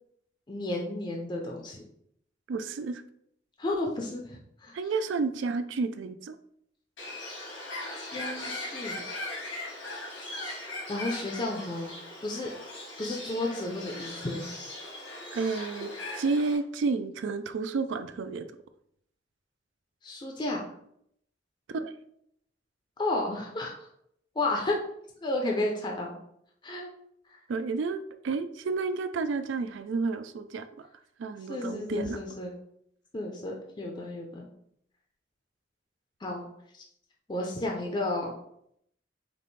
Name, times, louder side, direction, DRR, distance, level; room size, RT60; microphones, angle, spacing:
voice 1, 0.5-1.8 3.6-4.8 8.0-9.0 10.9-11.9 12.2-12.5 13.0-14.5 20.0-20.7 23.0-23.7 24.3-24.8 25.2-26.2 26.6-26.9 27.3-27.4 31.5-32.5 33.1-34.5 36.2-36.5 36.7-36.8 37.3-38.3, left 2 dB, 25° left, 0 dB, 0.5 m, -32 dB
voice 2, 2.5-3.0 4.7-6.4 15.3-18.5 21.7-21.9 27.5-30.7 31.2-32.2, right 4 dB, 75° right, 11 dB, 0.4 m, -31 dB
Bird, 7.0-16.6, left 1 dB, 85° left, 1.5 m, -39 dB
5.1 x 2.5 x 3.2 m, 0.72 s
head